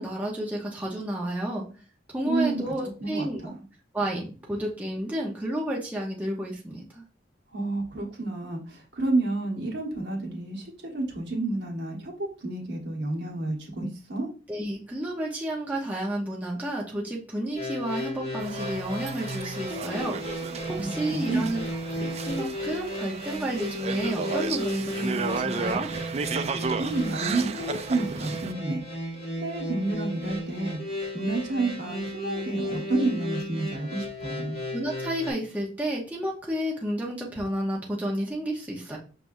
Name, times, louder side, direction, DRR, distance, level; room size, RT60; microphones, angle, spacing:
voice 1, 0.0-1.6 2.1-3.4 3.9-7.0 14.5-20.2 20.7-21.6 22.0-25.9 34.7-39.0, right 1 dB, 10° right, -3 dB, 0.9 m, -31 dB
voice 2, 2.3-2.7 3.0-3.5 7.5-14.3 20.7-21.6 26.8-28.8 29.4-34.6, right 2 dB, 60° right, -1 dB, 1.3 m, -30 dB
sound 1, 17.5-35.3, equal, 35° left, 1.6 m, -34 dB
sound 2, 18.4-28.5, right 5 dB, 35° right, 0.3 m, -34 dB
6.0 x 3.4 x 2.6 m, 0.36 s
head